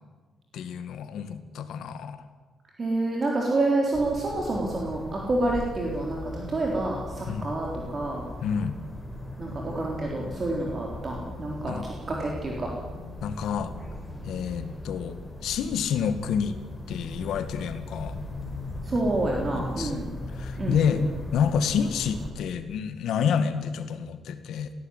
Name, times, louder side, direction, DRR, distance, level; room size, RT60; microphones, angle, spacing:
voice 1, 0.5-2.2 7.3-7.5 8.4-8.8 11.7-11.8 13.2-13.7 14.2-16.6 16.9-18.2 19.5-21.0 21.3-24.7, left 7 dB, 80° left, 10 dB, 1.9 m, -29 dB
voice 2, 2.8-8.2 9.4-12.7 18.8-20.1 20.6-21.1, right 2 dB, 30° right, -1 dB, 3.7 m, -28 dB
sound 1, 3.9-22.3, left 1 dB, 5° left, 5.2 m, -38 dB
19.5 x 16.0 x 9.9 m, 1.4 s
cardioid pair, 145°, 0 cm